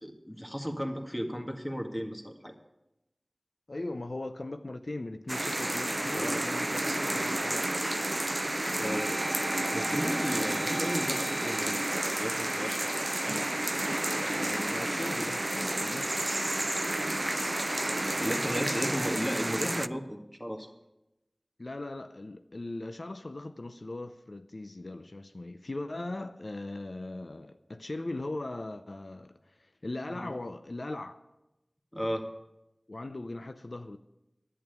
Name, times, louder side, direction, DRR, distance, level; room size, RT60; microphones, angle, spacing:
voice 1, 0.0-2.5 6.1-6.4 8.8-9.2 9.7-13.1 18.2-20.7 30.1-30.3 31.9-32.3, equal, 10° left, 1.9 m, -34 dB
voice 2, 3.7-7.7 14.3-15.5 15.8-16.3 21.6-31.2 32.9-34.0, left 2 dB, 75° left, 0.6 m, -39 dB
sound 1, 5.3-19.9, right 1 dB, 40° right, 0.4 m, -31 dB
sound 2, 8.5-14.7, right 2 dB, 70° right, 0.9 m, -43 dB
11.0 x 8.8 x 9.3 m
wide cardioid pair, 40°, 0 cm